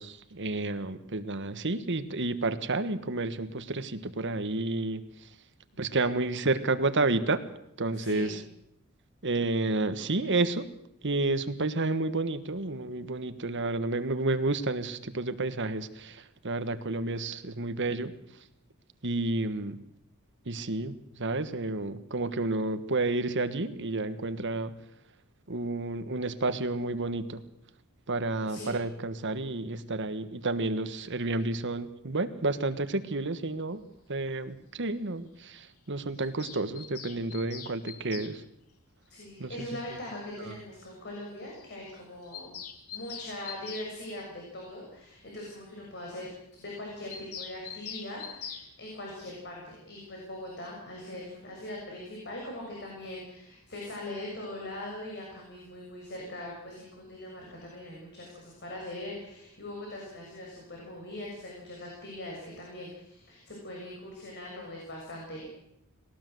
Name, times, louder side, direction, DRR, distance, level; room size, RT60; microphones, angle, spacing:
voice 1, 0.0-5.3 5.8-7.4 7.8-8.4 9.2-10.7 11.0-18.1 19.0-19.8 20.4-24.7 25.5-27.4 28.1-33.8 34.1-38.4 39.4-39.7 40.4-40.6, right 2 dB, 55° right, 11 dB, 1.5 m, -30 dB
voice 2, 7.9-8.3 28.5-28.8 39.1-42.6 42.9-46.3 46.6-65.5, left 1 dB, 50° left, -1 dB, 6.6 m, -41 dB
Bird vocalization bird call bird song, 36.2-38.3 39.8-39.9 40.1-40.2 40.4-40.5 40.8-40.9 41.2-41.3 41.5-41.7 41.9-43.9 47.1-48.7, left 8 dB, 80° left, 2.6 m, -43 dB
20.0 x 18.0 x 7.9 m, 0.77 s
head